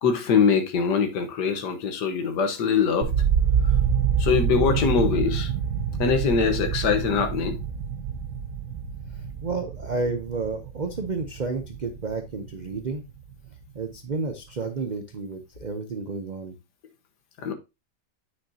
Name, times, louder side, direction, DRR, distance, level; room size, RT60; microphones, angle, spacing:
voice 1, 0.0-3.1 4.2-5.5 6.0-7.6 17.4-17.5, left 6 dB, 70° left, 1.7 m, -23 dB
sound 1, 3.0-13.0 13.3-14.0, right 7 dB, 65° right, 1.4 m, -27 dB
voice 2, 9.4-13.0 13.7-16.5, right 4 dB, 85° right, 0.4 m, -31 dB
8.9 x 5.9 x 2.8 m
omnidirectional pair, 1.9 m